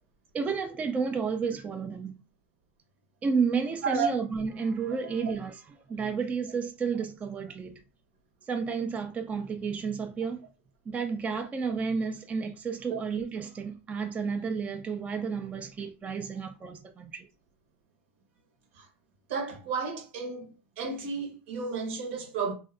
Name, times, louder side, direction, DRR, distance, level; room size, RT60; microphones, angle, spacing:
voice 1, 0.3-2.2 3.2-5.6 5.9-7.8 8.5-10.4 10.9-17.3, right 5 dB, 20° right, 0.3 m, -31 dB
voice 2, 3.8-4.1 5.2-5.3 12.9-13.0 19.3-20.5 20.8-22.5, right 5 dB, 75° right, 0.9 m, -32 dB
2.5 x 2.1 x 2.4 m
supercardioid pair, 110°, 7 cm